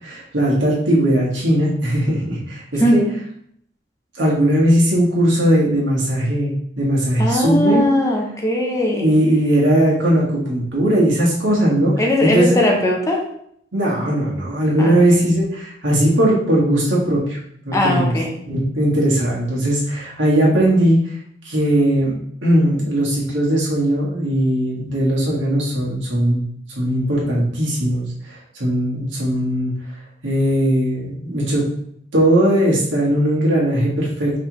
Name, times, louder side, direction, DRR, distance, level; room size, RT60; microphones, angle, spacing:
voice 1, 0.0-3.0 4.2-7.9 9.0-12.6 13.7-17.4 17.6-18.1 18.4-21.0 21.4-22.1 22.4-26.4 26.7-29.7 30.2-31.6 32.1-34.3, right 1 dB, 85° right, -5 dB, 1.6 m, -18 dB
voice 2, 2.8-3.1 7.2-9.1 12.0-13.2 14.8-15.0 17.7-18.3, left 1 dB, 15° left, 0 dB, 0.6 m, -19 dB
5.0 x 3.3 x 3.0 m, 0.69 s
head